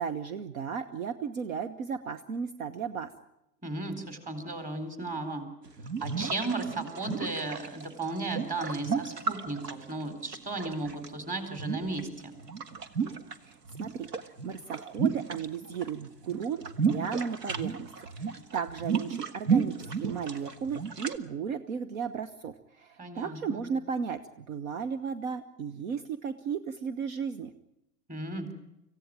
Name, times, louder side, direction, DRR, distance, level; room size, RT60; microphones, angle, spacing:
voice 1, 0.0-3.1 13.4-27.5, right 6 dB, 55° right, 11 dB, 1.2 m, -35 dB
voice 2, 3.6-5.5 6.0-12.4 23.0-23.6 28.1-28.5, right 2 dB, 15° right, 8 dB, 4.0 m, -35 dB
sound 1, 5.7-11.1 11.5-13.4 13.6-15.9 16.2-21.2, right 6 dB, 70° right, 1.7 m, -32 dB
26.0 x 15.5 x 9.1 m, 0.88 s
figure-of-eight pair, 100°, 49 cm